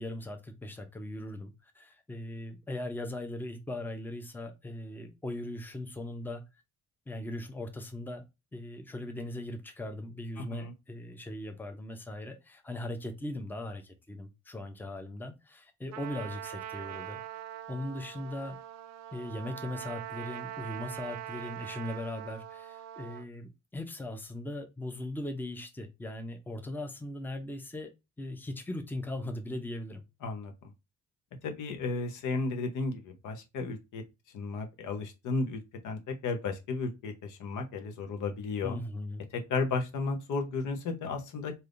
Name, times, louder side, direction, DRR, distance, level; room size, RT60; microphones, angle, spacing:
voice 1, 0.0-6.4 7.1-8.2 8.5-17.2 17.7-18.6 19.1-27.9 28.2-30.0 38.6-39.2, left 1 dB, 5° left, 0.6 m, -39 dB
voice 2, 10.4-10.7 30.2-30.5 31.4-34.0 34.3-38.8 39.3-41.5, left 3 dB, 80° left, 0.9 m, -34 dB
Trumpet, 15.9-23.3, right 13 dB, 60° right, 0.5 m, -42 dB
3.4 x 2.7 x 2.5 m
cardioid pair, 90°, 30 cm